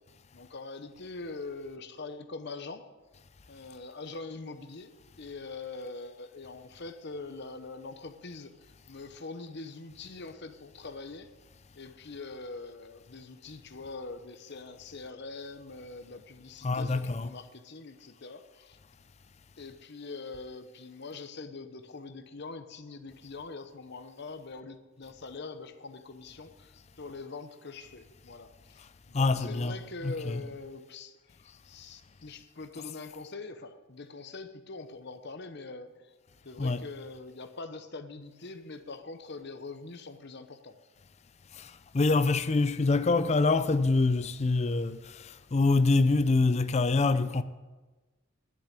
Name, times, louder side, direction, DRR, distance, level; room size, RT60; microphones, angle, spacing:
voice 1, 0.3-2.9 3.5-4.9 5.2-8.5 8.9-11.3 11.7-18.8 19.6-31.2 31.6-36.1 36.4-40.8, left 3 dB, 50° left, 0.9 m, -43 dB
voice 2, 16.6-17.3 29.1-29.8 30.0-30.4 36.6-36.8 41.5-47.4, left 3 dB, 30° left, 0.4 m, -25 dB
11.0 x 6.9 x 8.2 m
head